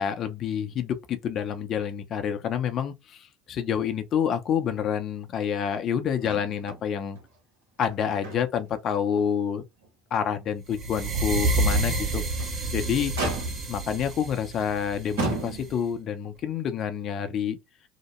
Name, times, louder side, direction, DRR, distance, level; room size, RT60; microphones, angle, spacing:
voice 1, 0.0-7.2 7.8-9.6 10.1-12.2 12.7-13.1 13.7-17.6, left 8 dB, 50° left, 0.7 m, -28 dB
Motor vehicle (road), 6.2-6.8 7.1-7.3 7.8-8.7 9.1-9.3 9.8-9.9 12.1-12.6 13.2-13.8 14.6-14.8 15.2-16.0 17.0-17.1, right 3 dB, 80° right, 1.2 m, -33 dB
sound 1, 10.7-15.8, right 2 dB, 45° right, 1.0 m, -28 dB
2.8 x 2.1 x 3.1 m
hypercardioid pair, 65°, 0 cm